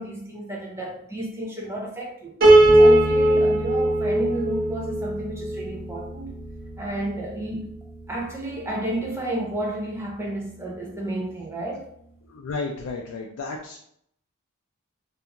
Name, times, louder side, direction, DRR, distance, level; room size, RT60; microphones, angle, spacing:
voice 1, 0.0-2.3 2.7-6.4 6.8-7.7 8.1-11.9, right 1 dB, 10° right, 0.4 m, -31 dB
Piano, 2.4-5.6, right 1 dB, 40° right, 0.8 m, -17 dB
sound 1, 2.6-12.1, right 1 dB, 65° right, 1.1 m, -36 dB
voice 2, 12.3-13.9, left 3 dB, 75° left, 0.3 m, -33 dB
2.4 x 2.3 x 2.8 m
head